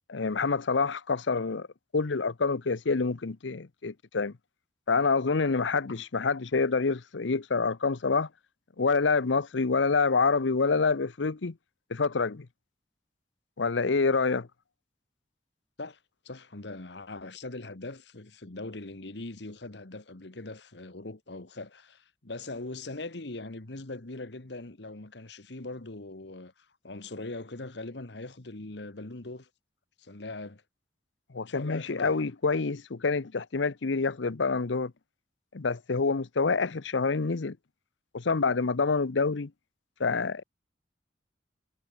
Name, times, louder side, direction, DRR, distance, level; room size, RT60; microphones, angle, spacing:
voice 1, 0.1-1.7 1.9-4.3 4.9-8.3 8.8-11.5 11.9-12.5 13.6-14.5 31.3-34.9 35.5-37.6 38.1-39.5 40.0-40.4, left 4 dB, 90° left, 0.8 m, -27 dB
voice 2, 16.2-29.5 30.0-30.6 31.4-32.3, left 2 dB, 75° left, 1.5 m, -41 dB
head